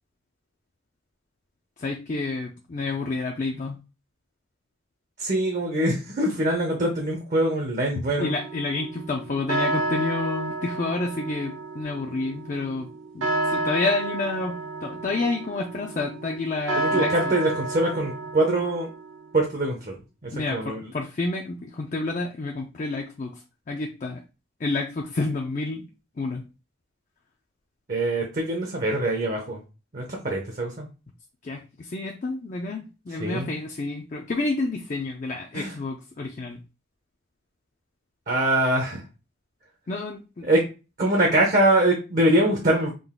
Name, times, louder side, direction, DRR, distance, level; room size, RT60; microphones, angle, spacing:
voice 1, 1.8-3.8 8.2-12.9 13.1-17.3 20.3-23.3 23.7-24.2 24.6-25.8 26.2-26.4 31.4-36.6 39.9-40.5, left 3 dB, 40° left, 1 dB, 0.4 m, -29 dB
voice 2, 5.2-8.3 16.7-18.9 19.3-20.0 20.2-20.8 27.9-29.6 29.9-30.9 33.2-33.5 35.5-35.8 38.3-39.0 40.4-40.6 41.0-42.9, right 1 dB, 40° right, 1 dB, 0.7 m, -23 dB
sound 1, 8.2-19.4, right 2 dB, 85° right, 0.9 m, -31 dB
3.8 x 2.4 x 3.6 m, 0.31 s
head